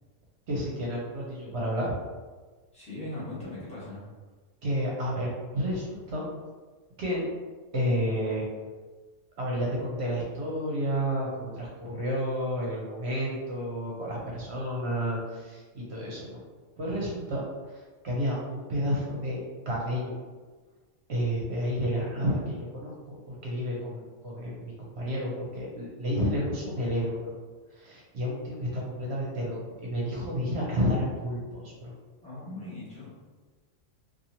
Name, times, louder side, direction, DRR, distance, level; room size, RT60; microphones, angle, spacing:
voice 1, 0.5-1.9 4.6-6.2 7.0-7.2 7.7-8.5 9.4-16.4 16.8-17.4 17.7-19.4 19.7-20.1 21.1-27.3 27.7-31.9, equal, 65° right, -4 dB, 0.9 m, -31 dB
voice 2, 2.7-4.0 32.2-33.1, left 2 dB, 5° left, -10 dB, 1.1 m, -39 dB
2.8 x 2.5 x 2.8 m, 1.4 s
omnidirectional pair, 1.3 m